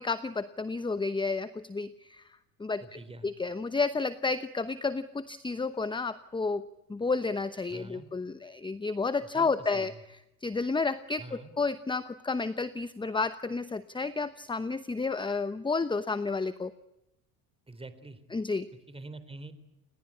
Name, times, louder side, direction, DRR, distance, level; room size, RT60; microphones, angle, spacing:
voice 1, 0.0-2.2 2.6-2.8 3.2-6.6 6.9-16.7 18.3-18.7, left 4 dB, 10° left, 13 dB, 1.0 m, -31 dB
voice 2, 2.8-3.3 7.7-8.1 9.3-10.0 11.2-11.5 17.7-18.2 18.9-19.5, right 2 dB, 15° right, 13 dB, 3.7 m, -45 dB
29.0 x 19.5 x 9.8 m, 0.92 s
supercardioid pair, 95°, 40 cm